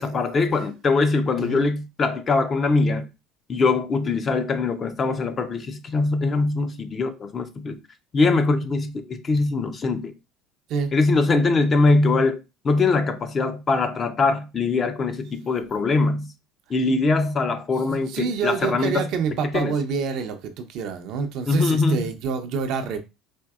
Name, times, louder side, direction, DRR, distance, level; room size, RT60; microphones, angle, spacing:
voice 1, 0.0-3.1 3.5-7.8 8.1-10.1 10.9-12.4 12.6-16.3 16.7-19.1 19.5-19.7 21.5-22.0, left 3 dB, 35° left, 0.7 m, -22 dB
voice 2, 17.9-23.0, right 6 dB, 65° right, 0.7 m, -27 dB
4.4 x 2.6 x 2.4 m
supercardioid pair, 90°, 0 cm